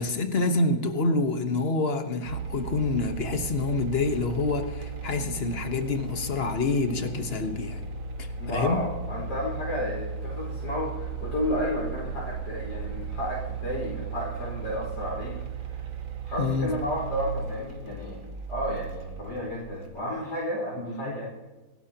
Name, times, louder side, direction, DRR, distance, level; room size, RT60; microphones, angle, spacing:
voice 1, 0.0-7.8 8.2-8.8 16.4-16.7 20.9-21.1, left 3 dB, 40° left, 7 dB, 1.2 m, -27 dB
sound 1, 2.3-20.0, right 5 dB, 85° right, 2.3 m, -36 dB
voice 2, 8.4-15.4 15.7-15.8 16.2-18.2 18.5-21.3, equal, 70° left, -4 dB, 5.5 m, -32 dB
26.5 x 12.0 x 2.9 m, 1.2 s
omnidirectional pair, 2.1 m